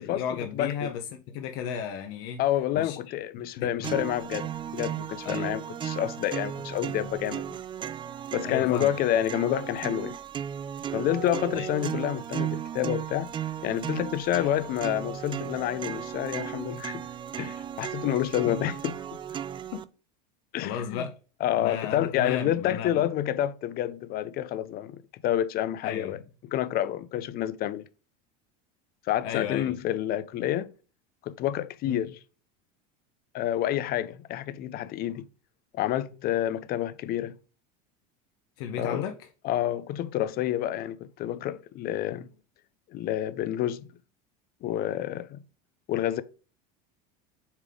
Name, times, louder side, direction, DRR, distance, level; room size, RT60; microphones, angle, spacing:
voice 1, 0.0-2.4 2.7-3.9 5.2-5.5 8.4-8.9 11.5-11.7 18.5-18.6 19.7-19.8 20.6-21.1 21.6-23.0 25.8-26.2 29.2-29.8 31.9-32.0 38.6-39.1, left 8 dB, 65° left, 1.0 m, -34 dB
voice 2, 0.5-0.9 2.4-7.6 8.3-10.1 10.9-13.3 13.6-17.0 17.4-18.9 20.5-21.0 21.4-26.2 26.5-27.8 29.1-30.7 31.2-32.2 33.3-35.2 35.7-37.4 38.8-39.0 39.4-42.3 42.9-43.9 44.6-45.4 45.9-46.2, left 12 dB, 45° left, 0.6 m, -28 dB
sound 1, 3.8-19.8, right 9 dB, 25° right, 0.4 m, -35 dB
7.2 x 3.4 x 3.8 m
supercardioid pair, 100°, 21 cm